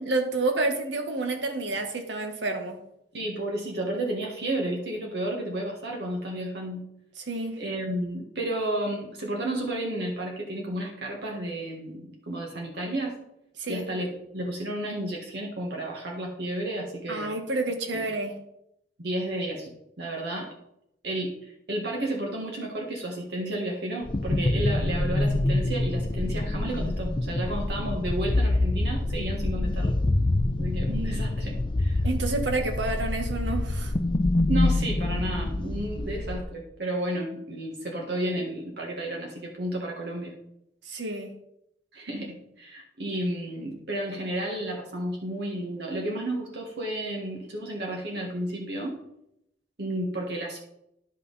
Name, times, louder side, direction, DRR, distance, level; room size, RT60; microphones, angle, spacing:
voice 1, 0.0-2.8 7.3-7.5 13.6-13.8 17.1-18.4 32.0-33.9 40.9-41.3, right 2 dB, 90° right, 5 dB, 1.4 m, -29 dB
voice 2, 3.1-6.8 7.6-13.2 13.7-17.3 17.9-18.1 19.0-19.7 20.0-20.5 21.0-30.0 30.6-32.0 34.5-40.3 41.9-49.0 49.8-50.6, right 1 dB, 65° right, -1 dB, 1.5 m, -32 dB
sound 1, 24.1-36.4, left 2 dB, 30° left, 0.5 m, -26 dB
11.0 x 5.6 x 4.0 m, 0.80 s
head